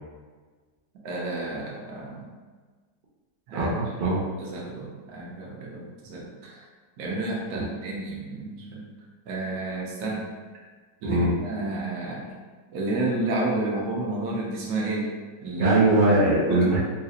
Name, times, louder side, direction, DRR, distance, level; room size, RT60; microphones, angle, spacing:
voice 1, 1.0-2.3 3.5-6.7 7.0-8.8 9.3-10.3 11.0-12.3 12.7-15.1 15.4-15.8 16.5-16.7, right 2 dB, 90° right, -3 dB, 1.2 m, -31 dB
voice 2, 3.5-4.2 7.5-7.6 11.0-11.3 15.6-16.8, right 2 dB, 55° right, -6 dB, 0.5 m, -21 dB
3.9 x 2.4 x 2.8 m, 1.4 s
omnidirectional pair, 1.6 m